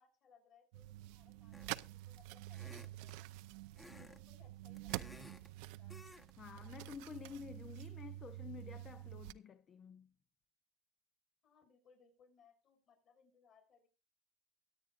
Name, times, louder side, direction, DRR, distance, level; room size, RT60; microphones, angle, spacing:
voice 1, 0.0-3.3 3.8-5.9 11.4-13.9, left 6 dB, 45° left, 7.3 m, -69 dB
sound 1, 0.7-9.3, right 17 dB, 80° right, 0.6 m, -48 dB
sound 2, 1.5-1.9 2.5-3.2 3.8-4.2 4.5-5.5 5.9-6.3 6.6-6.8, left 1 dB, 10° left, 1.2 m, -56 dB
voice 2, 6.4-10.1, left 6 dB, 30° left, 0.6 m, -51 dB
23.5 x 8.7 x 2.5 m
cardioid pair, 140°, 0 cm